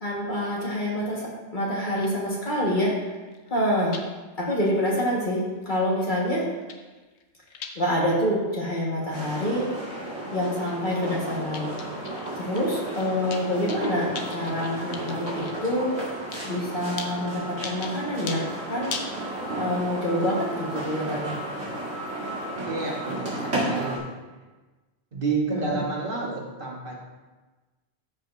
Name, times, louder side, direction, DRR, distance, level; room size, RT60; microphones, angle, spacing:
voice 1, 0.0-3.0 3.5-4.0 4.4-6.5 7.8-9.9 10.3-11.7 12.4-16.1 16.4-19.0 19.5-21.3 25.5-25.8, equal, 50° left, -4 dB, 1.7 m, -27 dB
sound 1, 2.0-2.1 2.3-2.4 2.6-4.0 4.4-4.7 4.9-5.0 5.6-6.2 6.5-7.7 8.1-8.3 8.7-9.5 9.8-10.1 10.4-11.2 11.5-12.3 12.6-15.5 16.3-16.5 17.0-17.1 17.6-17.9 18.3-18.4 18.9-19.2, left 5 dB, 85° left, 1.0 m, -39 dB
sound 2, 9.1-24.0, right 1 dB, 80° right, 2.6 m, -33 dB
voice 2, 22.7-24.1 25.1-27.0, right 3 dB, 55° right, -3 dB, 1.5 m, -30 dB
13.0 x 5.1 x 2.7 m, 1.2 s
omnidirectional pair, 1.1 m